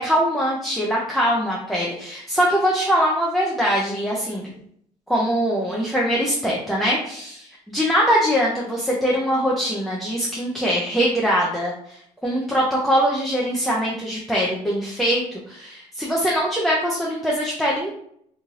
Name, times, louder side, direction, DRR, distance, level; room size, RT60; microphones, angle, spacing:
voice 1, 0.0-4.5 5.1-7.3 7.7-12.0 12.2-17.9, equal, ahead, -4 dB, 0.4 m, -22 dB
3.1 x 2.6 x 2.3 m, 0.67 s
cardioid pair, 160°, 15 cm